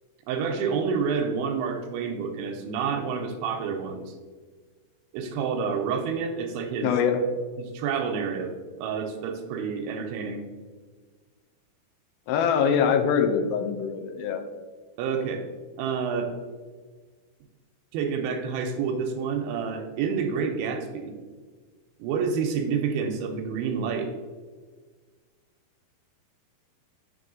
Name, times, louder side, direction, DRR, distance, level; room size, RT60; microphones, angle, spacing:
voice 1, 0.3-4.2 5.1-6.9 7.6-10.4 15.0-15.4 15.8-16.3 17.9-21.1 22.0-24.1, right 6 dB, 85° right, 4 dB, 2.4 m, -28 dB
voice 2, 6.8-7.2 12.3-14.4, left 7 dB, 85° left, 6 dB, 2.4 m, -23 dB
8.9 x 3.0 x 3.8 m, 1.5 s
omnidirectional pair, 4.4 m